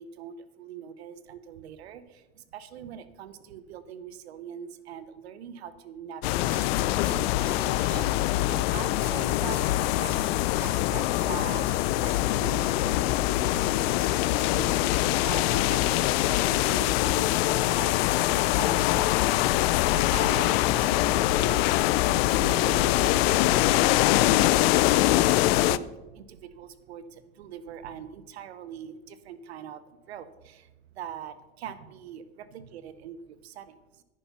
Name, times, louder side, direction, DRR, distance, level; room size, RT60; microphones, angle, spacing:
voice 1, 0.0-10.3 10.6-19.4 19.9-34.0, right 9 dB, 85° right, 13 dB, 1.0 m, -42 dB
sound 1, 6.2-25.8, left 16 dB, 70° left, 0.6 m, -23 dB
sound 2, 6.5-8.2 9.0-9.2 9.5-10.3 10.6-11.4 11.7-12.2 14.0-14.5, left 1 dB, 5° left, 3.9 m, -47 dB
10.0 x 9.7 x 5.7 m, 1.1 s
hypercardioid pair, 85°, 31 cm